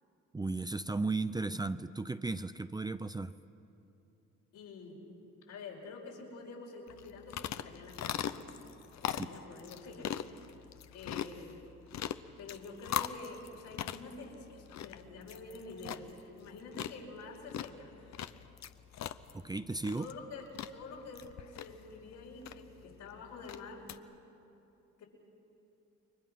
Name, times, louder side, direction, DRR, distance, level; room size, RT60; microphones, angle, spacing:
voice 1, 0.3-3.3 9.2-9.3 19.3-20.1, right 3 dB, 15° right, 12 dB, 0.5 m, -35 dB
voice 2, 4.5-5.0 5.5-8.5 9.0-10.1 10.9-11.6 12.4-17.9 20.0-23.9 25.0-25.1, left 3 dB, 80° left, -2 dB, 5.3 m, -47 dB
sound 1, 6.9-24.0, left 10 dB, 65° left, 0.8 m, -42 dB
29.5 x 23.0 x 5.9 m, 2.9 s
cardioid pair, 90°, 30 cm